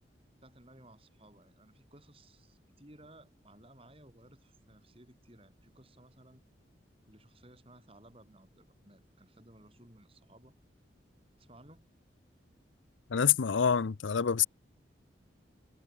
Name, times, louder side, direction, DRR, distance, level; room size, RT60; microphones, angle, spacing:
voice 1, 0.4-6.4 7.1-10.5 11.4-11.8, right 1 dB, 30° right, 7.5 m, -58 dB
voice 2, 13.1-14.5, left 7 dB, 90° left, 0.6 m, -26 dB
head